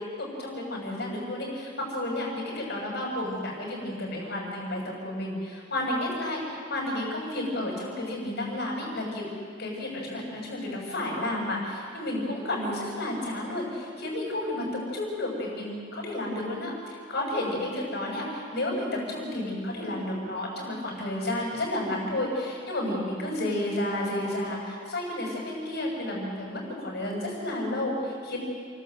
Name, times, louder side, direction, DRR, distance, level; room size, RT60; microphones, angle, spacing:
voice 1, 0.2-9.2 9.6-28.4, left 1 dB, 60° left, -2 dB, 7.1 m, -31 dB
29.0 x 12.0 x 7.9 m, 2.1 s
head